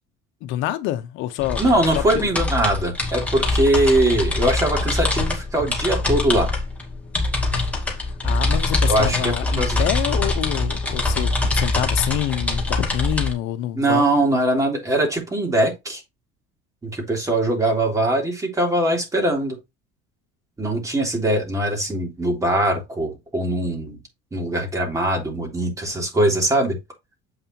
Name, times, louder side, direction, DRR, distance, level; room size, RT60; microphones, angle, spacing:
voice 1, 0.4-1.6 2.1-2.3 8.0-14.0, left 13 dB, 70° left, 0.9 m, -27 dB
sound 1, 1.4-13.3, left 2 dB, 5° left, 2.2 m, -23 dB
voice 2, 1.6-6.5 8.9-9.8 13.7-16.0 16.8-19.6 20.6-24.0 24.3-26.8, right 1 dB, 15° right, 3.3 m, -21 dB
8.0 x 5.5 x 2.9 m
cardioid pair, 135°, 20 cm